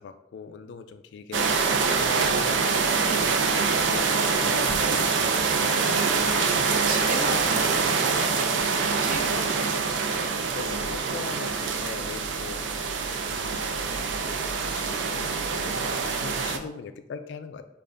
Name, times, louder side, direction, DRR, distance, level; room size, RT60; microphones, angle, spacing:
voice 1, 0.0-2.6 3.0-3.1 3.7-5.5 6.2-6.8 10.5-12.9 13.3-13.6 14.1-17.7, left 5 dB, 70° left, 9 dB, 0.3 m, -41 dB
sound 1, 1.3-16.6, right 5 dB, 75° right, 0.4 m, -25 dB
voice 2, 6.2-8.4 9.0-10.3, right 2 dB, 50° right, -2 dB, 1.1 m, -37 dB
6.8 x 2.4 x 2.5 m, 0.86 s
head